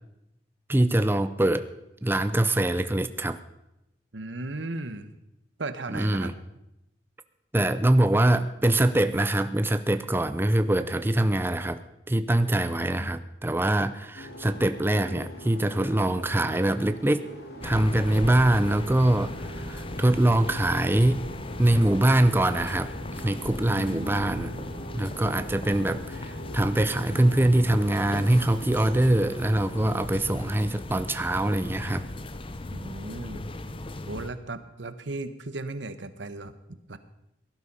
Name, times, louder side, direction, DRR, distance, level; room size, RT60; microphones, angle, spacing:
voice 1, 0.7-1.7 2.0-3.4 5.9-6.3 7.5-11.8 12.1-17.3 17.6-21.2 21.6-22.9 23.2-24.5 24.9-32.0, right 1 dB, 10° right, 11 dB, 0.6 m, -23 dB
voice 2, 4.1-5.2 5.6-6.3 23.6-24.7 32.7-33.5 34.1-36.5 36.9-37.0, right 2 dB, 85° right, 11 dB, 1.2 m, -36 dB
sound 1, 14.2-32.5, right 1 dB, 60° left, 2.7 m, -43 dB
sound 2, 17.6-34.3, left 2 dB, 30° left, 0.8 m, -37 dB
17.5 x 11.5 x 5.5 m, 0.87 s
head